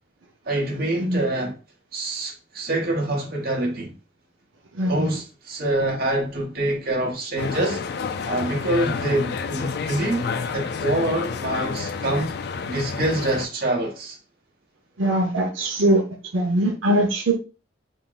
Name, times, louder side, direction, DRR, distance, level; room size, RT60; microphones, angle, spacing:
voice 1, 0.4-1.5 1.9-4.0 4.9-7.8 8.2-12.3 12.6-14.2, right 1 dB, 50° right, 1.1 m, -25 dB
voice 2, 4.7-5.1 15.0-16.0 16.3-17.3, right 1 dB, 85° right, 0.7 m, -21 dB
sound 1, 7.4-13.5, left 5 dB, 55° left, 0.3 m, -29 dB
3.6 x 2.1 x 3.9 m
head